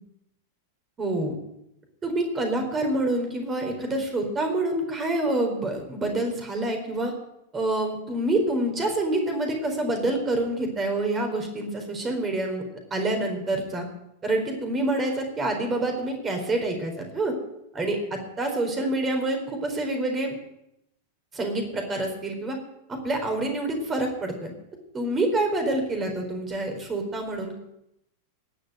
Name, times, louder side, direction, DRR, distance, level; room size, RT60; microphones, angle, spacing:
voice 1, 1.0-1.3 2.0-7.1 7.5-12.6 12.9-13.9 14.2-17.3 17.7-20.4 21.3-22.6 22.9-24.5 24.9-27.6, right 2 dB, 20° right, 4 dB, 4.2 m, -27 dB
18.5 x 6.7 x 8.0 m, 0.82 s
figure-of-eight pair, 90°, 0 cm